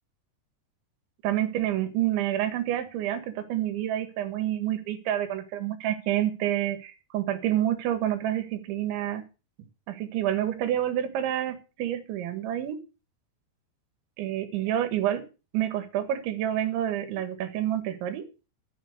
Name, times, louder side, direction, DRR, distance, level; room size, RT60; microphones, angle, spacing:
voice 1, 1.2-9.2 9.9-12.8 14.2-15.3 15.5-18.3, right 12 dB, 85° right, 9 dB, 3.9 m, -28 dB
13.0 x 7.4 x 6.6 m, 0.32 s
omnidirectional pair, 5.2 m